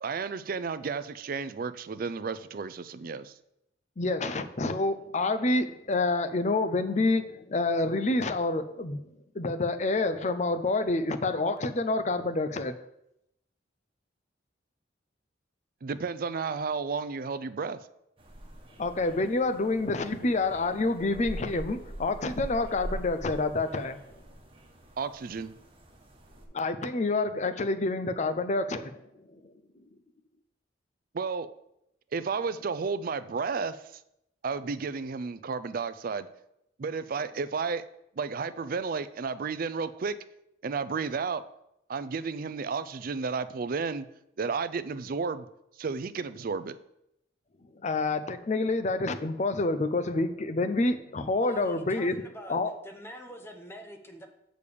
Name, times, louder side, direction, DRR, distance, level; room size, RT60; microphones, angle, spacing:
voice 1, 0.0-3.3 15.8-17.8 25.0-25.5 31.1-31.5 32.1-33.8 34.4-36.3 36.8-37.8 38.2-40.2 40.6-41.4 41.9-44.1 44.4-45.5 45.8-46.8, right 5 dB, 50° right, 13 dB, 0.4 m, -32 dB
voice 2, 4.0-9.0 9.3-12.7 18.8-24.0 26.5-29.0 29.3-29.4 47.8-52.2 52.5-52.7, left 2 dB, 40° left, 9 dB, 0.6 m, -28 dB
sound 1, 18.2-26.5, right 1 dB, 30° right, 1.3 m, -44 dB
voice 3, 51.4-52.6 52.8-54.3, equal, 15° left, 4 dB, 0.9 m, -44 dB
6.7 x 5.1 x 6.9 m, 0.81 s
head